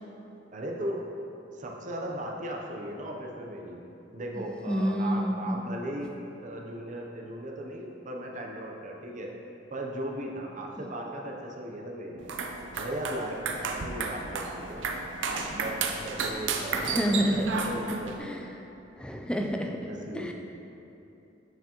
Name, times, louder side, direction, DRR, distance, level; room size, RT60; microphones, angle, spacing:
voice 1, 0.5-1.1 1.5-3.8 4.1-6.1 6.4-9.3 9.7-12.2 12.8-14.8 15.3-18.4 19.9-20.3, right 1 dB, 40° right, 0 dB, 0.6 m, -37 dB
voice 2, 4.4-5.6 16.8-17.6 18.2-18.5 19.0-19.8 20.1-20.3, equal, 5° left, 2 dB, 0.4 m, -29 dB
sound 1, 12.2-18.2, right 4 dB, 85° right, 0.5 m, -33 dB
7.0 x 5.8 x 2.9 m, 3.0 s
head